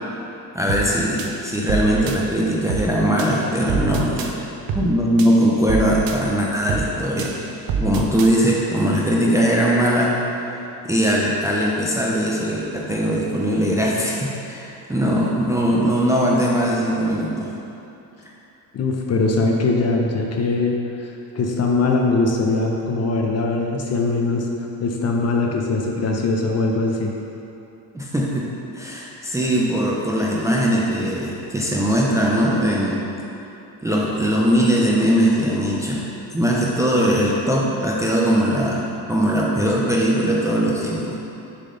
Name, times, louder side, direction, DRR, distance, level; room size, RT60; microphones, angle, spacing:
voice 1, 0.5-4.4 4.7-7.4 7.7-10.2 10.8-17.5 27.9-28.5 28.7-33.0 33.8-36.1 36.3-38.8 39.1-41.2, equal, 5° right, -4 dB, 0.5 m, -20 dB
sound 1, 0.7-0.9 1.2-2.2 2.7-2.9 3.2-4.3 4.7-4.9 5.2-6.2 6.7-6.9 7.2-8.3, right 6 dB, 55° right, 0.6 m, -26 dB
voice 2, 18.7-24.5 24.8-27.1, left 3 dB, 35° left, 0 dB, 0.7 m, -21 dB
6.6 x 3.9 x 3.8 m, 2.9 s
cardioid pair, 110°, 43 cm